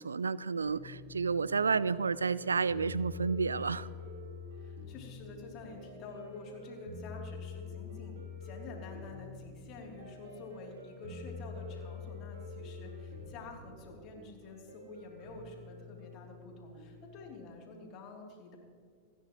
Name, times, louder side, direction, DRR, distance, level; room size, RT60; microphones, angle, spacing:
voice 1, 0.0-3.9, right 5 dB, 75° right, 19 dB, 0.3 m, -31 dB
sound 1, 0.6-17.3, left 4 dB, 55° right, 3.0 m, -47 dB
voice 2, 4.5-18.6, left 3 dB, 40° left, 0 dB, 3.2 m, -49 dB
29.0 x 10.0 x 3.1 m, 2.3 s
figure-of-eight pair, 90°, 0 cm